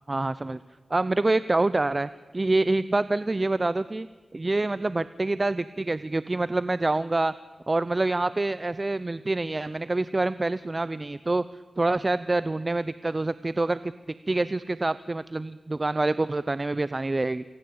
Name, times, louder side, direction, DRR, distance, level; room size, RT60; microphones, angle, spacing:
voice 1, 0.1-0.6 0.9-4.1 4.3-7.3 7.7-11.5 11.8-13.9 14.3-17.4, right 2 dB, 35° right, 16 dB, 0.8 m, -26 dB
28.5 x 21.5 x 8.7 m, 1.4 s
cardioid pair, 60°, 0 cm